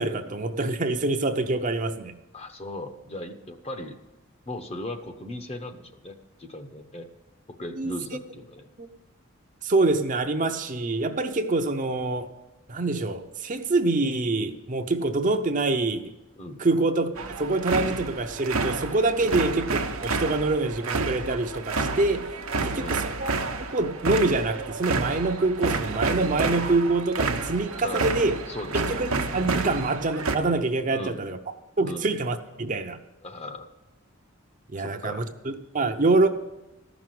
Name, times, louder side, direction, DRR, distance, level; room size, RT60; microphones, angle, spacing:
voice 1, 0.0-2.1 7.8-7.9 8.8-8.9 9.6-12.3 12.7-16.1 16.6-17.1 17.4-22.3 22.6-23.3 23.6-28.4 28.7-31.4 31.8-33.0 34.7-36.3, right 2 dB, 40° right, 6 dB, 0.6 m, -25 dB
voice 2, 2.3-4.0 4.5-7.1 7.6-8.7 16.4-16.6 19.2-19.4 22.5-23.0 27.8-28.2 28.5-29.0 30.9-31.3 31.8-32.1 33.2-33.7 34.8-35.3, left 1 dB, 30° left, 7 dB, 0.8 m, -38 dB
sound 1, 17.2-30.3, right 3 dB, 90° right, 0.9 m, -30 dB
14.0 x 6.1 x 7.6 m, 0.99 s
head